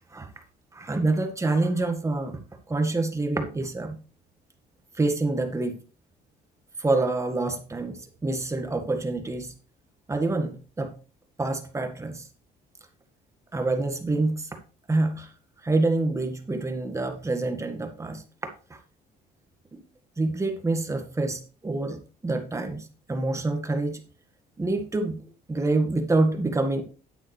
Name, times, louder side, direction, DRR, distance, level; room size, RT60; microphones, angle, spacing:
voice 1, 0.7-2.4 2.7-4.0 5.0-5.7 6.8-9.5 10.1-11.0 11.4-12.2 13.5-14.5 14.9-15.3 15.6-18.2 19.7-19.8 20.2-22.0 22.2-24.0 24.6-25.2 25.5-26.8, right 2 dB, 15° right, 5 dB, 1.7 m, -26 dB
9.6 x 8.6 x 3.3 m, 0.38 s
cardioid pair, 110°, 17 cm